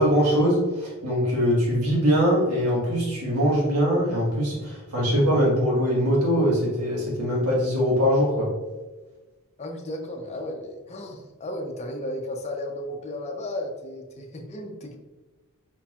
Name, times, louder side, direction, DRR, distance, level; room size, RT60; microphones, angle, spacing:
voice 1, 0.0-8.5, equal, 85° right, -5 dB, 1.4 m, -22 dB
voice 2, 9.6-15.0, left 1 dB, 30° left, 2 dB, 0.5 m, -34 dB
4.5 x 4.1 x 2.3 m, 1.2 s
head